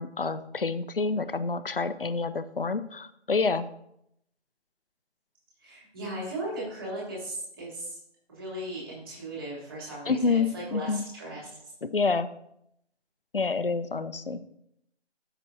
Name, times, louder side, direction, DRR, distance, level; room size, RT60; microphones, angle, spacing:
voice 1, 0.0-3.7 10.1-11.0 11.8-12.3 13.3-14.4, left 4 dB, 55° left, 13 dB, 0.6 m, -28 dB
voice 2, 5.6-8.0 8.3-11.7, right 1 dB, 20° right, -6 dB, 2.9 m, -37 dB
13.0 x 6.0 x 2.7 m, 0.77 s
figure-of-eight pair, 165°, 34 cm